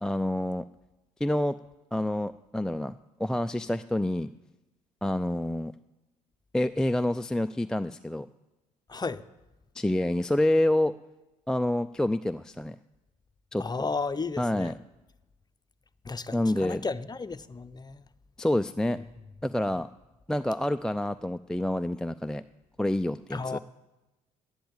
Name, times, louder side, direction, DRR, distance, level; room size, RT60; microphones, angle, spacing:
voice 1, 0.0-0.6 1.2-1.6 1.9-4.3 5.0-5.7 6.5-8.3 9.7-10.9 11.5-12.8 13.5-13.9 14.4-14.7 16.3-16.8 18.4-19.0 19.4-19.9 20.3-22.4 22.8-23.6, left 1 dB, 5° left, 0.4 m, -27 dB
voice 2, 8.9-9.2 13.6-14.7 16.0-18.0 23.3-23.6, left 4 dB, 20° left, 0.8 m, -33 dB
12.0 x 10.0 x 8.8 m
hypercardioid pair, 50°, 18 cm